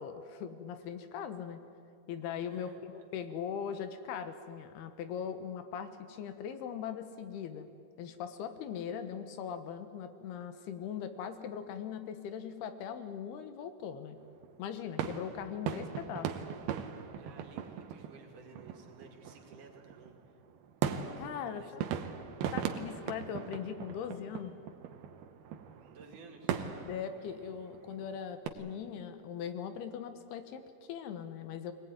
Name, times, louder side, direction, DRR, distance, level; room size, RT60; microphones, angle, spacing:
voice 1, 0.0-1.6 2.1-7.7 8.0-14.2 14.6-16.3 21.2-21.8 22.5-24.5 26.8-31.7, left 8 dB, 90° left, 9 dB, 3.2 m, -40 dB
voice 2, 2.5-3.1 17.2-20.4 21.5-22.1 25.9-26.5, right 3 dB, 60° right, 2 dB, 3.5 m, -55 dB
sound 1, 14.2-28.5, right 8 dB, 80° right, 2.9 m, -40 dB
22.5 x 19.0 x 9.5 m, 2.5 s
omnidirectional pair, 4.5 m